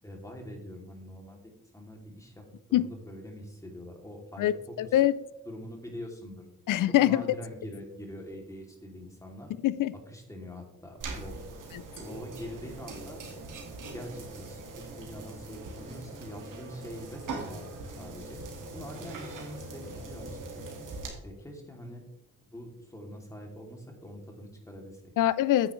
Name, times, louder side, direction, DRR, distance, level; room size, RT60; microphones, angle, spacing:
voice 1, 0.0-5.0 5.4-6.5 7.0-9.5 10.1-11.4 12.0-13.2 13.9-17.7 18.0-18.4 18.7-20.7 21.2-22.1 22.5-25.0, left 1 dB, 10° left, 2.7 m, -44 dB
voice 2, 4.4-5.2 6.7-7.2 9.6-9.9 11.7-11.8 25.2-25.7, left 13 dB, 75° left, 0.5 m, -24 dB
sound 1, 11.0-21.1, right 3 dB, 70° right, 2.1 m, -41 dB
9.7 x 8.9 x 3.2 m
cardioid pair, 85°, 32 cm